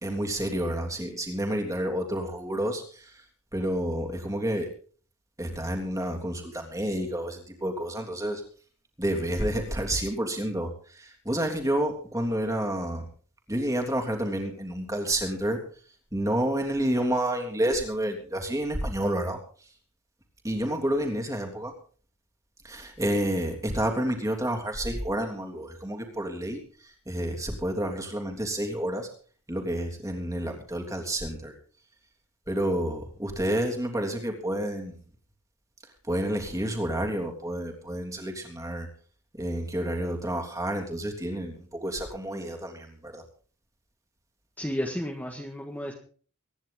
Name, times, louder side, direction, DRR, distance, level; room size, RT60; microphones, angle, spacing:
voice 1, 0.0-3.2 3.5-4.7 5.4-8.4 9.0-13.0 13.5-15.6 16.1-19.4 20.4-21.7 22.6-29.1 29.5-31.5 32.5-35.0 36.1-38.9 39.4-43.2, right 1 dB, 15° right, 3 dB, 3.3 m, -29 dB
voice 2, 44.6-45.9, equal, 10° left, 0 dB, 1.7 m, -32 dB
24.5 x 10.5 x 3.9 m, 0.43 s
head